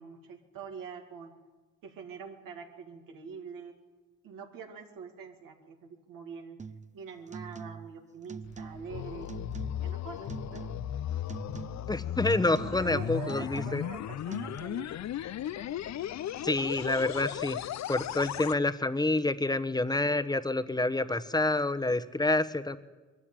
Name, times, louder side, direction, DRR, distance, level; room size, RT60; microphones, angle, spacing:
voice 1, 0.0-1.3 1.8-3.8 4.2-6.6 6.9-9.3 9.8-10.7 12.6-15.1, right 5 dB, 85° right, 2 dB, 2.5 m, -44 dB
sound 1, 6.6-6.9 7.3-8.0 8.3-9.0 9.3-9.9 10.3-11.0 11.3-11.9 12.3-13.0 13.3-14.0 14.3-14.6, right 5 dB, 20° right, 0.9 m, -43 dB
sound 2, 8.4-18.6, left 11 dB, 60° left, 0.6 m, -36 dB
voice 2, 11.9-13.8 16.4-17.6 17.9-22.8, left 2 dB, 10° left, 10 dB, 1.1 m, -28 dB
21.5 x 13.5 x 9.1 m, 1.2 s
cardioid pair, 85°, 32 cm